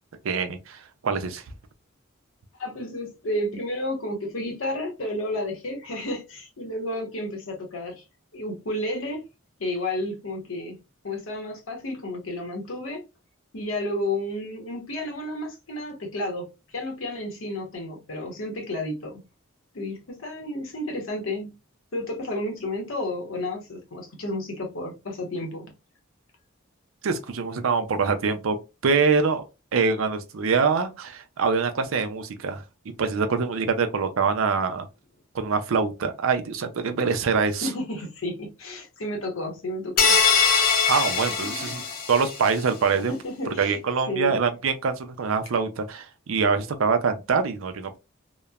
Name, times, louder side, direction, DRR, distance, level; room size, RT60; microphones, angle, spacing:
voice 1, 0.2-1.4 27.0-28.6 28.8-29.4 29.7-32.6 33.0-34.9 35.3-37.7 40.9-41.8 42.1-43.1 43.5-48.0, right 5 dB, 80° right, 0.5 m, -24 dB
voice 2, 2.6-8.0 8.3-9.2 9.6-10.8 11.0-13.0 13.5-19.2 19.7-21.5 21.9-25.7 37.6-40.2 41.4-41.9 43.1-43.8 44.1-44.4, left 1 dB, 80° left, 0.9 m, -31 dB
sound 1, 40.0-42.5, left 6 dB, 45° left, 0.6 m, -22 dB
2.9 x 2.1 x 2.3 m
head